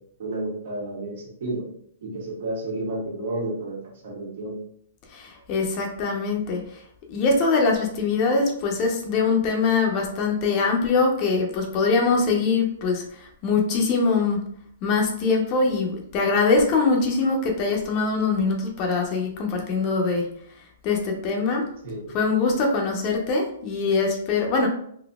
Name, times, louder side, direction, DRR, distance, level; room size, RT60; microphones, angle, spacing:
voice 1, 0.2-1.6 2.0-3.8 4.0-4.5 21.8-22.0, right 2 dB, 65° right, -3 dB, 1.4 m, -31 dB
voice 2, 5.1-6.8 7.1-14.4 14.8-20.3 20.8-21.6 22.1-24.7, left 4 dB, 40° left, 1 dB, 0.7 m, -23 dB
4.0 x 2.7 x 2.3 m, 0.65 s
hypercardioid pair, 130°, 0 cm